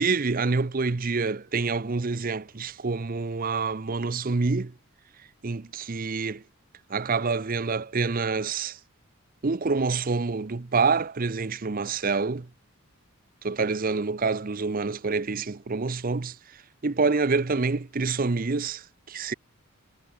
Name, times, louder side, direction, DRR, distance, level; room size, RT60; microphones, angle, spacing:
voice 1, 0.0-4.7 5.4-6.4 6.9-8.8 9.4-12.5 13.4-16.4 16.8-19.3, right 4 dB, 40° right, 0.6 m, -27 dB
head